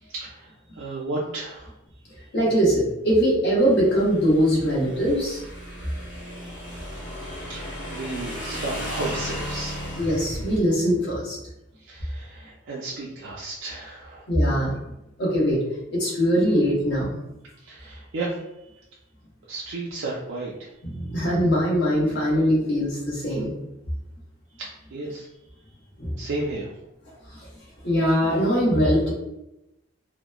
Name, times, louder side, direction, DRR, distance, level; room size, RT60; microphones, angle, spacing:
voice 1, 0.0-1.7 5.9-6.0 6.4-7.0 7.5-9.8 11.8-14.3 17.6-18.4 19.5-20.7 24.6-25.3 26.2-26.7, right 2 dB, 60° right, -5 dB, 0.4 m, -33 dB
voice 2, 2.3-5.4 10.0-11.4 14.3-14.7 15.2-15.6 15.9-17.2 20.8-23.5 26.0-26.1 27.8-29.1, equal, 55° left, -6 dB, 0.9 m, -21 dB
Motorcycle / Engine, 3.6-10.6, equal, 90° left, 0.9 m, -35 dB
2.9 x 2.0 x 2.2 m, 0.92 s
head